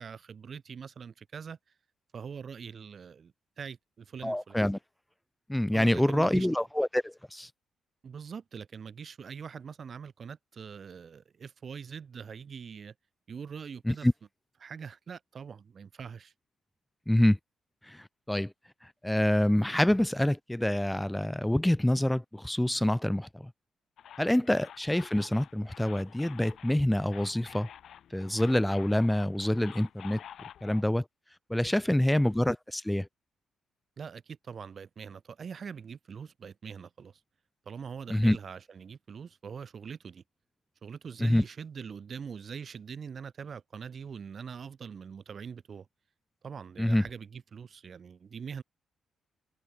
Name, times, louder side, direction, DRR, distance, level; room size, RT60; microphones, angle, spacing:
voice 1, 0.0-1.6 2.1-4.6 5.7-6.6 8.0-12.9 13.3-14.1 14.6-16.3 32.1-32.2 34.0-37.2 37.6-40.2 40.8-45.9 46.4-48.6, right 6 dB, 40° right, 2.8 m, -43 dB
voice 2, 4.2-4.8 5.5-7.5 13.9-14.1 17.1-17.4 17.9-18.5 19.0-23.5 24.2-27.7 28.1-30.2 30.6-31.0 31.5-33.1 38.1-38.4 41.2-41.4 46.8-47.0, left 1 dB, 5° left, 0.3 m, -26 dB
sound 1, 24.0-30.8, left 9 dB, 60° left, 5.1 m, -50 dB
cardioid pair, 150°, 0 cm